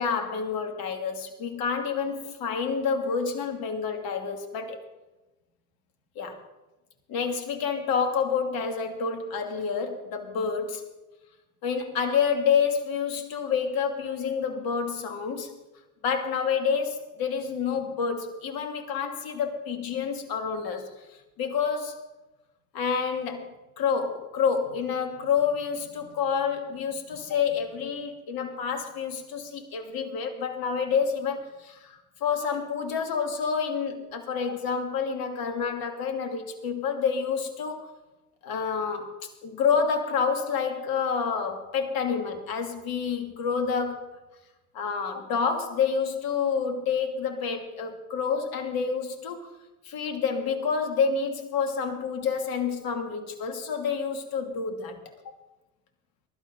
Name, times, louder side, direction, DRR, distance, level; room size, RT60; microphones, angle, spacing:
voice 1, 0.0-4.8 6.2-6.4 7.1-10.9 11.6-15.6 16.0-20.9 21.4-22.0 22.7-23.5 23.8-37.9 38.4-44.2 44.7-49.5 49.8-55.0, left 6 dB, 50° left, 5 dB, 2.8 m, -28 dB
22.5 x 12.0 x 4.0 m, 1.0 s
figure-of-eight pair, 65°, 45 cm